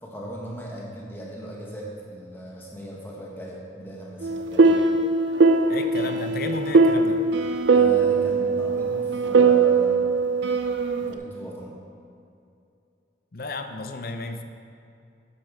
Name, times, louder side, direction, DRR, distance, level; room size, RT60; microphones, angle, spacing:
voice 1, 0.0-4.7 7.7-10.2 11.0-11.8, equal, 10° left, -3 dB, 1.1 m, -38 dB
sound 1, 4.2-11.1, right 4 dB, 75° right, 0.6 m, -20 dB
voice 2, 5.7-7.2 13.3-14.4, left 3 dB, 50° left, 7 dB, 0.6 m, -33 dB
12.0 x 8.6 x 3.5 m, 2.5 s
head